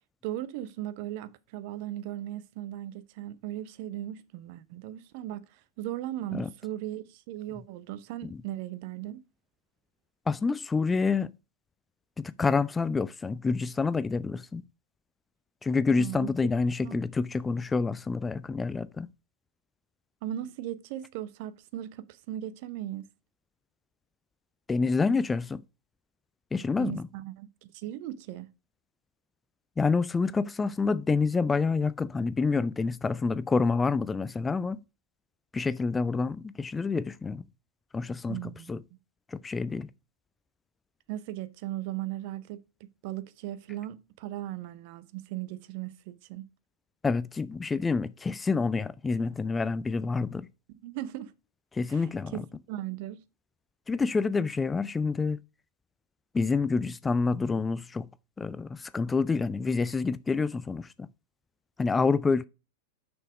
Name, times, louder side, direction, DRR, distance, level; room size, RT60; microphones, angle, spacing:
voice 1, 0.2-9.2 16.0-16.3 16.8-17.0 20.2-23.1 26.8-27.5 27.7-28.5 38.3-38.8 41.1-42.6 43.0-46.4 50.8-51.3 51.9-52.0 52.3-53.2, right 13 dB, 45° right, 0.7 m, -37 dB
voice 2, 10.3-11.3 12.2-14.6 15.6-19.1 24.7-25.6 26.5-27.1 29.8-34.8 35.5-37.4 37.9-38.8 39.3-39.9 47.0-50.5 51.7-52.4 53.9-55.4 56.3-58.1 58.4-61.1 61.8-62.4, left 4 dB, 15° left, 0.3 m, -28 dB
6.3 x 6.2 x 4.9 m
figure-of-eight pair, 90°, 0 cm